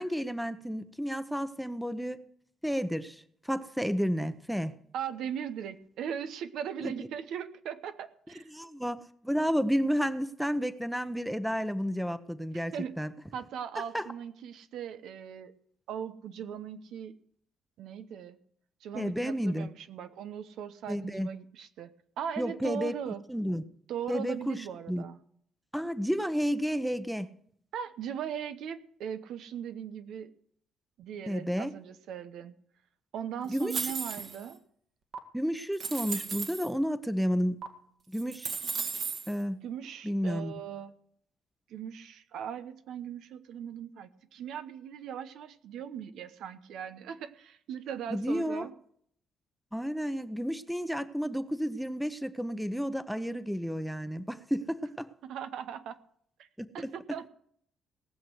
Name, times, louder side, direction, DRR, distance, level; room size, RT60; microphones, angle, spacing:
voice 1, 0.0-2.2 2.6-4.7 6.8-7.1 8.5-9.0 9.2-13.1 13.8-14.1 18.9-19.7 20.9-21.3 22.4-23.6 24.1-25.0 25.7-27.3 31.3-31.7 33.5-33.9 35.3-37.6 38.1-38.5 39.3-39.6 40.0-40.5 48.1-48.7 49.7-55.1 56.6-56.9, equal, ahead, 12 dB, 0.9 m, -31 dB
voice 2, 4.9-8.5 12.5-12.9 13.3-15.5 15.9-17.1 17.8-18.4 18.8-23.2 23.9-25.2 27.7-30.3 31.0-32.5 33.1-34.6 39.6-40.9 41.7-48.7 55.2-56.0 56.4-56.5 56.7-57.3, right 8 dB, 80° right, 11 dB, 0.9 m, -39 dB
sound 1, 33.5-34.5 35.1-35.2 35.7-36.7 37.6-37.7 38.1-39.3, right 5 dB, 60° right, 1.9 m, -35 dB
18.5 x 6.4 x 7.9 m, 0.65 s
cardioid pair, 90°, 0 cm